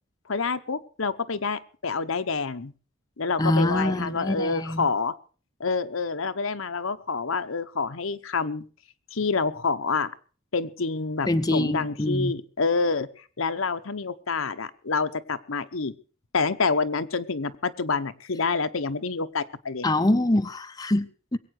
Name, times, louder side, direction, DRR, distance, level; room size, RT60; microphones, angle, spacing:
voice 1, 0.3-2.7 3.2-5.1 5.6-8.6 9.1-10.1 10.5-15.9 16.3-19.9, left 4 dB, 75° left, 10 dB, 1.0 m, -27 dB
voice 2, 3.4-4.9 11.3-12.3 19.8-21.4, left 1 dB, 20° left, 8 dB, 0.7 m, -24 dB
22.0 x 8.7 x 6.4 m, 0.40 s
head